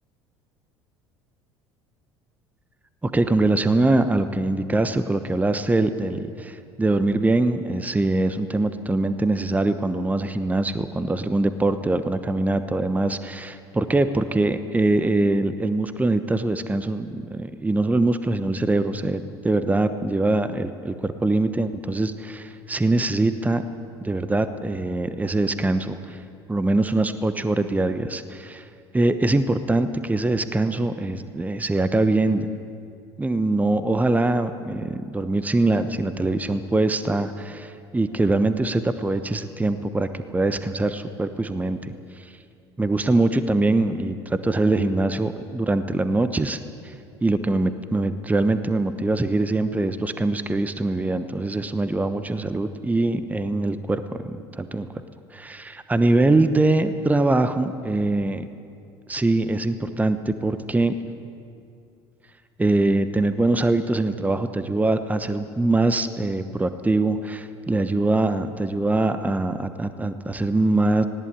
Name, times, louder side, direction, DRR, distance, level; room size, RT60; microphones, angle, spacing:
voice 1, 3.0-23.6 24.0-26.2 26.5-28.7 28.9-32.5 33.2-42.3 42.8-46.9 47.2-54.9 55.3-58.5 59.1-61.0 62.6-71.0, right 2 dB, 10° right, 11 dB, 1.1 m, -23 dB
20.0 x 18.5 x 8.5 m, 2.4 s
figure-of-eight pair, 60°, 14 cm